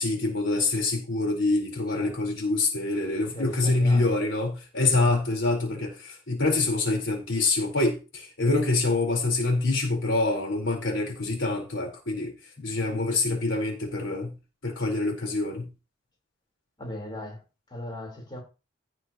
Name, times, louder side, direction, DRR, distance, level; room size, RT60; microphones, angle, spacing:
voice 1, 0.0-14.3 14.6-15.7, left 2 dB, 85° left, 3.9 m, -26 dB
voice 2, 1.9-2.2 3.3-4.2 16.8-17.4 17.7-18.4, left 1 dB, 25° left, 3.8 m, -38 dB
16.0 x 6.3 x 2.9 m
head